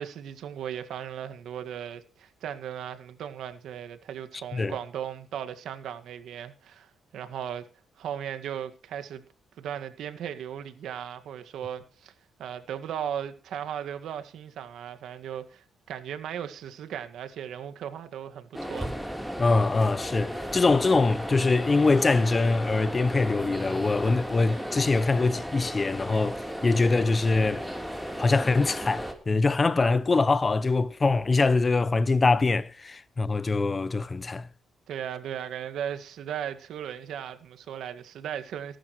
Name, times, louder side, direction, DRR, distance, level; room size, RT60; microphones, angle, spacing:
voice 1, 0.0-7.7 8.0-9.2 9.6-12.1 12.4-19.0 34.9-38.8, right 9 dB, 75° right, 1.8 m, -37 dB
sound 1, 18.5-29.1, equal, ahead, 3.6 m, -35 dB
voice 2, 19.4-27.7 28.2-34.5, left 3 dB, 30° left, 0.8 m, -23 dB
19.0 x 11.5 x 3.1 m
cardioid pair, 90°, 0 cm